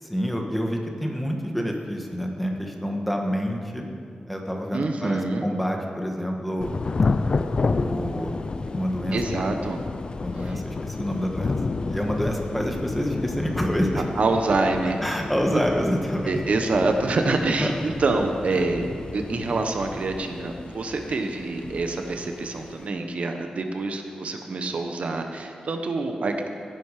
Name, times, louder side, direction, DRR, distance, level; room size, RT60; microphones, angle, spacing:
voice 1, 0.0-3.8 4.3-6.8 7.6-8.3 8.7-9.2 10.2-14.1 14.8-16.4 17.6-17.7, equal, 5° left, 1 dB, 1.3 m, -27 dB
voice 2, 4.7-5.5 9.1-9.8 10.5-10.6 14.2-15.0 15.5-15.6 16.3-18.9 19.1-26.5, right 3 dB, 60° right, 5 dB, 1.1 m, -26 dB
Thunder / Rain, 6.6-22.9, left 3 dB, 40° left, 0.5 m, -31 dB
17.0 x 10.5 x 5.0 m, 2.3 s
wide cardioid pair, 160°, 3 cm